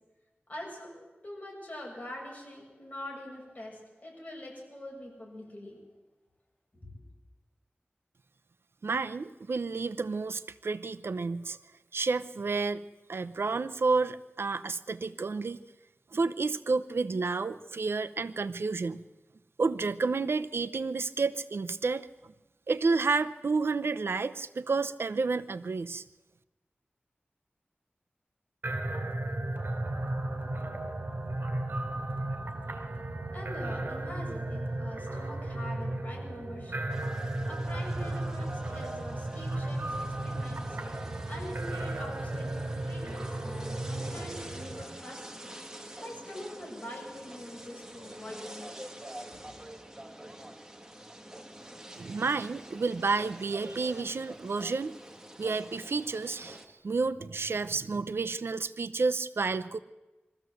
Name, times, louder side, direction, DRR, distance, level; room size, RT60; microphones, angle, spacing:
voice 1, 0.5-5.8 6.7-6.8 33.3-36.8 37.4-40.8 41.3-45.4 46.0-48.6 49.3-49.5, left 1 dB, 35° left, -1 dB, 7.2 m, -44 dB
voice 2, 8.8-11.6 11.9-12.8 13.1-15.6 16.1-19.0 19.6-22.3 22.7-26.0 51.9-55.0 55.4-59.8, right 4 dB, 80° right, 12 dB, 0.7 m, -30 dB
sound 1, 28.6-44.8, right 1 dB, 60° right, 2.9 m, -34 dB
sound 2, 36.9-56.7, right 1 dB, 15° right, 1.7 m, -47 dB
22.5 x 14.5 x 7.8 m, 1.1 s
wide cardioid pair, 75°, 4 cm